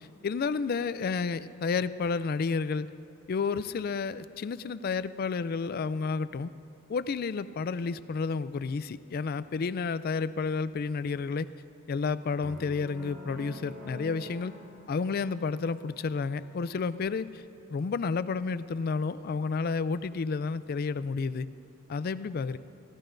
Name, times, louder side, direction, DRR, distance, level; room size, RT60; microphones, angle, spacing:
voice 1, 0.0-2.9 3.3-6.5 6.9-11.5 11.9-14.5 14.9-17.4 17.7-21.5 21.9-22.6, left 4 dB, 45° left, 15 dB, 0.3 m, -31 dB
sound 1, 12.4-16.6, left 1 dB, 10° right, 2.3 m, -47 dB
24.0 x 15.5 x 2.6 m, 2.5 s
head